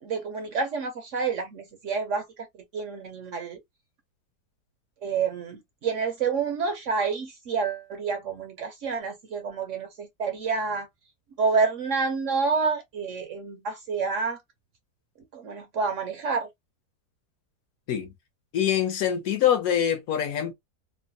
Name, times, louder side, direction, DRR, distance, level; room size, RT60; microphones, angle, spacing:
voice 1, 0.0-2.5 2.7-3.6 5.0-10.9 11.4-14.4 15.3-16.5, right 5 dB, 65° right, 0.8 m, -28 dB
voice 2, 18.5-20.5, left 10 dB, 65° left, 1.2 m, -24 dB
3.0 x 2.2 x 2.6 m
omnidirectional pair, 1.7 m